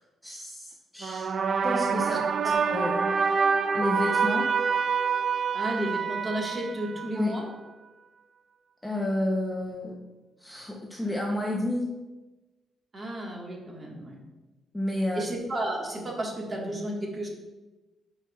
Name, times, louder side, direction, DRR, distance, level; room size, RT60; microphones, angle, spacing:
voice 1, 0.2-1.3 1.6-2.2 2.7-3.3 3.7-4.5 7.2-7.3 8.8-10.0 10.4-11.9 14.7-15.2, left 1 dB, 5° left, -1 dB, 0.6 m, -30 dB
sound 1, 1.0-7.4, right 5 dB, 45° right, 0.3 m, -26 dB
voice 2, 5.5-7.5 12.9-14.2 15.1-17.3, right 1 dB, 25° right, -1 dB, 1.3 m, -32 dB
11.0 x 4.6 x 2.3 m, 1.1 s
cardioid pair, 150°, 0 cm